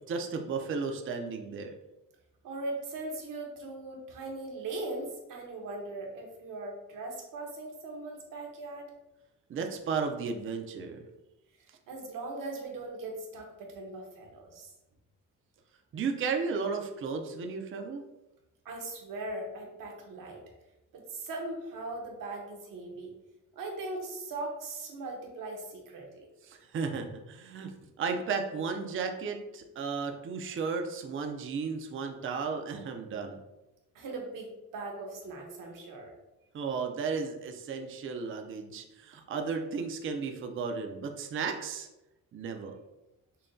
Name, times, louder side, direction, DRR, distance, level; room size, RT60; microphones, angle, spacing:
voice 1, 0.1-1.7 9.5-11.0 15.9-18.0 26.4-33.4 36.5-41.9 42.3-42.8, right 5 dB, 40° right, 4 dB, 0.4 m, -34 dB
voice 2, 2.4-8.9 11.9-14.7 18.6-20.4 20.9-23.1 23.5-26.3 33.9-36.1, right 2 dB, 70° right, 1 dB, 1.0 m, -39 dB
5.6 x 2.2 x 2.6 m, 0.97 s
cardioid pair, 115°, 34 cm